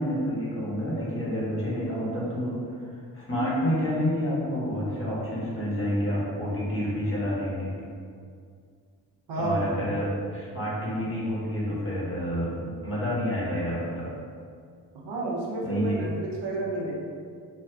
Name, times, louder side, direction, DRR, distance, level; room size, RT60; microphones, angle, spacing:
voice 1, 0.0-2.6 3.1-7.7 9.3-14.1 15.6-16.0, equal, 30° left, -7 dB, 1.1 m, -29 dB
voice 2, 9.3-9.8 15.0-16.9, right 2 dB, 65° right, -4 dB, 0.8 m, -30 dB
2.6 x 2.3 x 3.3 m, 2.2 s
supercardioid pair, 55°, 43 cm